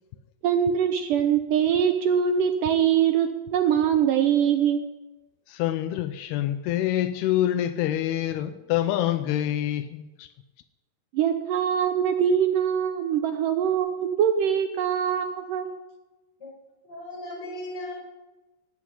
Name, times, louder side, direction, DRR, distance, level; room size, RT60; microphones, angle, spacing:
voice 1, 0.4-4.9 11.1-15.7, right 8 dB, 80° right, 1.9 m, -23 dB
voice 2, 5.5-10.3, left 12 dB, 80° left, 2.6 m, -26 dB
voice 3, 16.8-17.9, left 1 dB, 25° left, 5.9 m, -36 dB
17.0 x 8.5 x 9.9 m
omnidirectional pair, 4.8 m